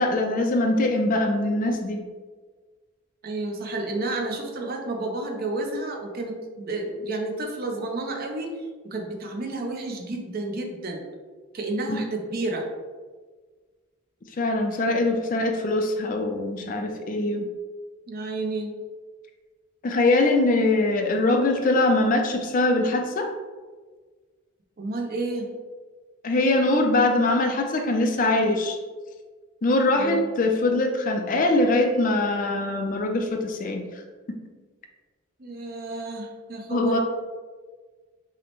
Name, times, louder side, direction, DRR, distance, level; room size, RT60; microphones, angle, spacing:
voice 1, 0.0-2.0 11.9-12.0 14.4-17.5 19.8-23.3 26.2-28.8 29.6-33.9 36.7-37.0, left 2 dB, 40° left, 4 dB, 0.4 m, -22 dB
voice 2, 3.2-8.5 8.8-11.0 11.5-12.6 18.1-18.7 24.8-25.5 30.0-30.3 35.4-37.0, right 2 dB, 45° right, 2 dB, 0.6 m, -31 dB
5.8 x 2.1 x 3.0 m, 1.4 s
head